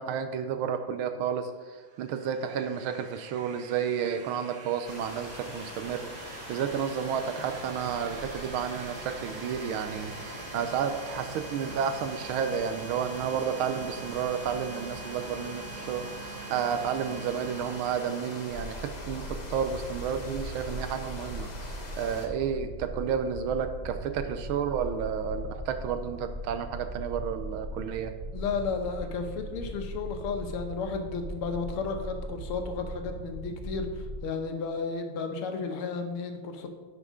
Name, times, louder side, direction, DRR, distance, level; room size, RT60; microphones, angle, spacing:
voice 1, 0.0-28.1, right 7 dB, 75° right, 8 dB, 1.3 m, -31 dB
sound 1, 1.7-19.4, right 5 dB, 60° right, 1.1 m, -45 dB
sound 2, 4.8-22.3, left 2 dB, 40° left, 0.6 m, -43 dB
sound 3, 18.5-34.2, right 1 dB, 20° right, 0.7 m, -39 dB
voice 2, 28.3-36.7, left 4 dB, 80° left, 5 dB, 1.8 m, -33 dB
10.0 x 6.0 x 3.7 m, 1.4 s
omnidirectional pair, 2.4 m